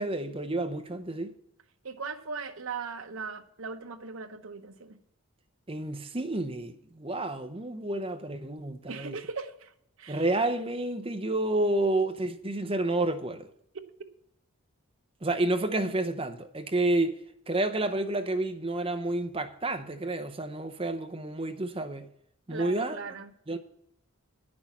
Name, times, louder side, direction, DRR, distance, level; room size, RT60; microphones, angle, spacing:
voice 1, 0.0-1.3 5.7-9.1 10.1-13.5 15.2-17.2 17.5-22.1 22.5-23.1 23.5-23.6, right 2 dB, 25° right, 0.7 m, -30 dB
voice 2, 1.8-5.0 8.9-9.7 10.0-10.3 13.7-13.8 22.5-23.3, right 4 dB, 70° right, 0.9 m, -39 dB
10.0 x 6.1 x 7.2 m
head